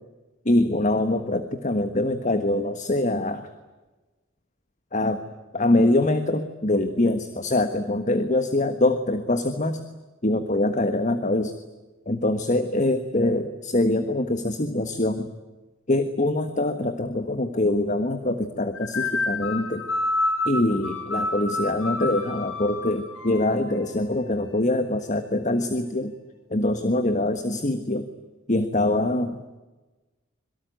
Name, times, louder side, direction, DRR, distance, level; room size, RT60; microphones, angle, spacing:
voice 1, 0.4-3.5 4.9-5.2 5.5-9.8 10.2-11.5 12.1-15.3 15.9-19.8 20.4-26.1 26.5-28.1 28.5-29.6, left 1 dB, 35° left, 10 dB, 1.4 m, -24 dB
sound 1, 18.7-23.8, left 2 dB, 85° left, 3.9 m, -29 dB
26.0 x 23.0 x 9.2 m, 1.2 s
head